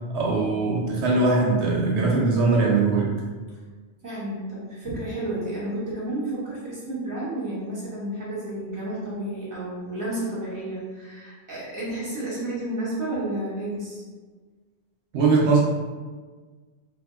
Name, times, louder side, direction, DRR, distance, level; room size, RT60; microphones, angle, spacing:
voice 1, 0.1-3.1 15.1-15.6, right 3 dB, 80° right, -4 dB, 0.9 m, -21 dB
voice 2, 4.0-14.0, right 1 dB, 20° right, -9 dB, 1.0 m, -31 dB
2.7 x 2.4 x 2.3 m, 1.4 s
omnidirectional pair, 1.2 m